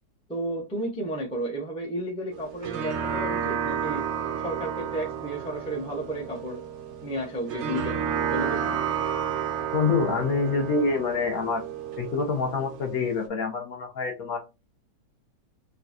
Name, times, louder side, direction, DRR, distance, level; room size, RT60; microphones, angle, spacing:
voice 1, 0.3-4.0 4.4-6.6 7.0-8.8, right 1 dB, 5° left, 0.5 m, -33 dB
sound 1, 2.3-13.3, right 8 dB, 60° right, 0.8 m, -31 dB
voice 2, 9.7-11.6 12.0-14.4, left 4 dB, 60° left, 1.4 m, -26 dB
3.8 x 2.3 x 2.6 m
omnidirectional pair, 1.8 m